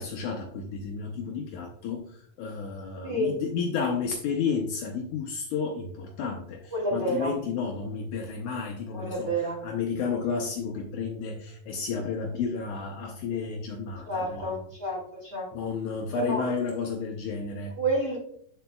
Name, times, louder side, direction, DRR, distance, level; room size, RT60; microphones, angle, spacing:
voice 1, 0.0-14.5 15.5-17.7, left 5 dB, 75° left, 2 dB, 2.0 m, -32 dB
voice 2, 3.0-3.3 6.7-7.3 8.9-9.6 14.1-15.7 16.1-16.4 17.8-18.2, right 1 dB, 20° right, -4 dB, 2.3 m, -29 dB
9.1 x 7.1 x 2.3 m, 0.63 s
omnidirectional pair, 4.0 m